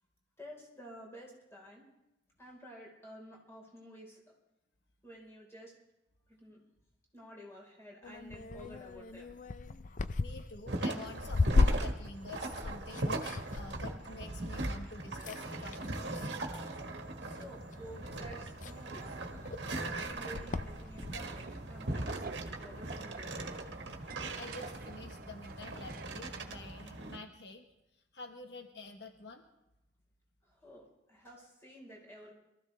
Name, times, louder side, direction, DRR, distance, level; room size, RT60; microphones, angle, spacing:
voice 1, 0.4-1.8 2.4-4.2 5.0-5.7 6.3-6.6 7.1-9.3 14.7-14.9 17.2-19.2 19.6-23.5 30.4-32.3, equal, 15° left, -2 dB, 4.2 m, -51 dB
sound 1, 8.0-14.9 15.2-15.9 16.8-17.2 17.7-17.8 18.0-21.2, left 3 dB, 45° left, 0.5 m, -35 dB
voice 2, 10.2-16.8 24.3-27.6 27.9-29.4, left 3 dB, 75° left, 4 dB, 1.3 m, -49 dB
sound 2, 10.7-27.2, right 2 dB, 90° right, 1.5 m, -39 dB
sound 3, 21.3-26.6, right 4 dB, 55° right, 0.8 m, -49 dB
23.0 x 14.0 x 3.3 m, 0.90 s
head